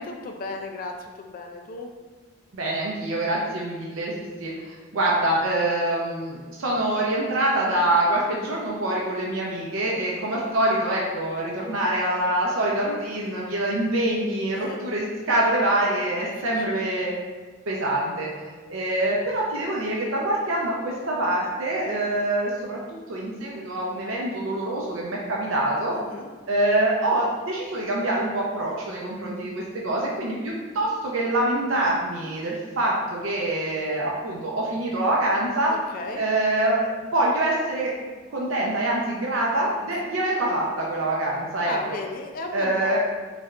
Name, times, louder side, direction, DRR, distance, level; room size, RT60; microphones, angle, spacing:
voice 1, 0.1-1.9 9.9-10.2 14.5-14.8 16.0-16.8 21.8-22.0 25.9-26.3 35.7-36.2 41.6-43.0, left 2 dB, 45° left, 3 dB, 0.3 m, -35 dB
voice 2, 2.5-17.1 17.7-18.3 18.7-22.8 23.1-26.0 26.5-35.7 36.2-37.9 38.3-41.7 42.5-43.0, right 1 dB, 90° right, -3 dB, 0.6 m, -25 dB
4.1 x 3.3 x 2.4 m, 1.3 s
head